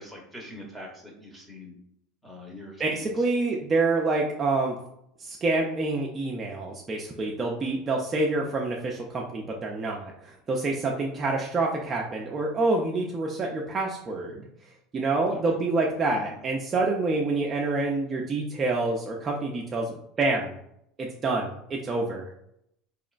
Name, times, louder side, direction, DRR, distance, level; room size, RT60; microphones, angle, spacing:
voice 1, 0.0-1.7 2.2-3.3 15.3-15.4 16.2-16.3, left 1 dB, ahead, -1 dB, 1.0 m, -44 dB
voice 2, 2.8-4.8 5.2-14.5 14.9-20.6 21.0-22.3, right 3 dB, 25° right, -1 dB, 0.5 m, -27 dB
4.1 x 3.0 x 2.4 m, 0.75 s
supercardioid pair, 130°, 0 cm